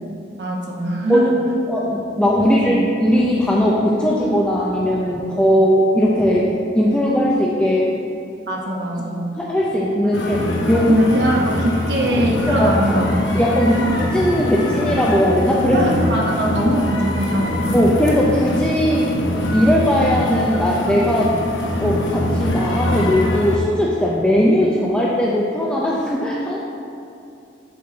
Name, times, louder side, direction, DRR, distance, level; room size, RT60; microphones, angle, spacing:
voice 1, 0.4-1.4 2.7-2.8 8.5-9.3 10.0-10.2 10.8-13.4 13.8-14.0 15.7-17.8, right 1 dB, 65° right, -1 dB, 0.9 m, -22 dB
voice 2, 1.7-6.5 6.7-7.9 9.4-10.4 10.7-10.9 12.5-12.7 13.3-15.9 17.7-19.1 19.5-21.4 21.8-26.6, equal, 5° left, -5 dB, 0.5 m, -18 dB
sound 1, 10.1-23.6, left 1 dB, 85° left, 0.8 m, -23 dB
6.8 x 5.8 x 3.9 m, 2.7 s
head